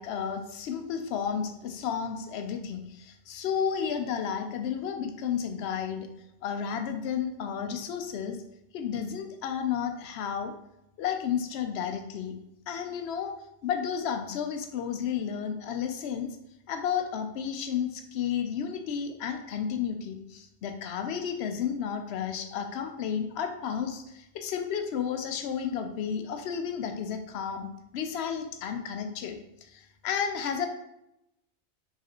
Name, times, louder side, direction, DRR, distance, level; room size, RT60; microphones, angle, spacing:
voice 1, 0.0-6.1 6.4-8.4 8.7-10.5 11.0-12.4 12.7-13.3 13.6-16.4 16.7-27.7 27.9-30.7, left 7 dB, 70° left, 6 dB, 0.8 m, -32 dB
4.8 x 3.3 x 2.9 m, 0.84 s
omnidirectional pair, 1.2 m